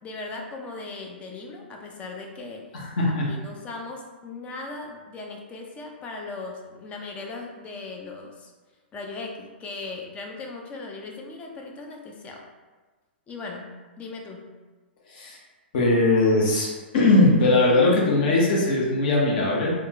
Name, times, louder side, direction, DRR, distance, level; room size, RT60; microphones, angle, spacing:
voice 1, 0.0-2.7 3.1-8.5 8.9-12.4 13.3-14.5, left 3 dB, 20° left, 1 dB, 0.5 m, -38 dB
voice 2, 2.7-3.2 15.1-15.4 15.7-16.7 16.9-19.7, left 2 dB, 50° left, -4 dB, 0.9 m, -20 dB
3.5 x 2.4 x 2.9 m, 1.3 s
figure-of-eight pair, 110°, 6 cm